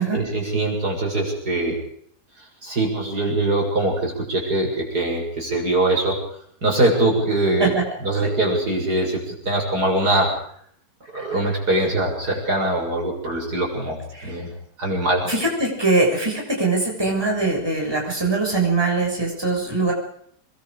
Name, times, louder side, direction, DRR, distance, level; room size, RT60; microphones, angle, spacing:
voice 1, 0.0-1.8 2.6-6.2 6.6-7.7 8.0-10.3 11.1-14.5 14.8-15.3, right 2 dB, 70° right, 0 dB, 7.4 m, -22 dB
voice 2, 15.2-19.9, right 3 dB, 15° right, -1 dB, 6.8 m, -22 dB
28.0 x 22.0 x 5.1 m, 0.64 s
omnidirectional pair, 1.8 m